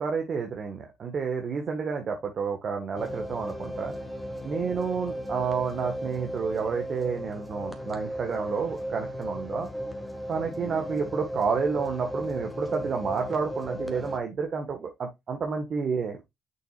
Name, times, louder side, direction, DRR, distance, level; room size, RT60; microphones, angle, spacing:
voice 1, 0.0-3.9 4.4-9.7 10.3-16.3, right 5 dB, 50° right, 1.6 m, -30 dB
sound 1, 3.0-14.2, equal, 5° left, 1.9 m, -35 dB
6.5 x 6.2 x 2.5 m
supercardioid pair, 60°, 0 cm